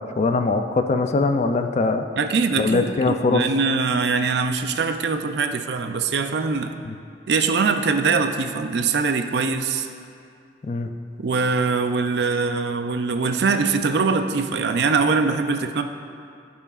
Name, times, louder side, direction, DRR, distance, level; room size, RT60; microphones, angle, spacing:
voice 1, 0.2-2.0 2.6-3.4 6.9-7.0 10.6-10.9, left 3 dB, 40° left, 7 dB, 0.4 m, -21 dB
voice 2, 2.2-6.7 7.3-9.9 11.2-15.8, right 4 dB, 70° right, 7 dB, 0.4 m, -22 dB
14.5 x 5.6 x 2.4 m, 2.4 s
head